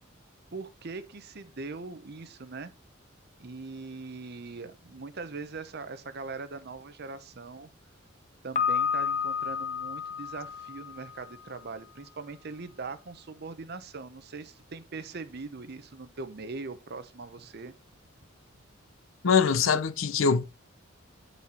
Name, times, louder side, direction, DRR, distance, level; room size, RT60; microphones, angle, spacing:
voice 1, 0.5-2.7 3.4-7.7 8.4-17.7, right 3 dB, 50° right, 0.7 m, -41 dB
Piano, 8.6-11.4, left 6 dB, 35° left, 0.7 m, -31 dB
voice 2, 19.2-20.4, left 6 dB, 75° left, 0.6 m, -23 dB
9.1 x 4.1 x 4.2 m
head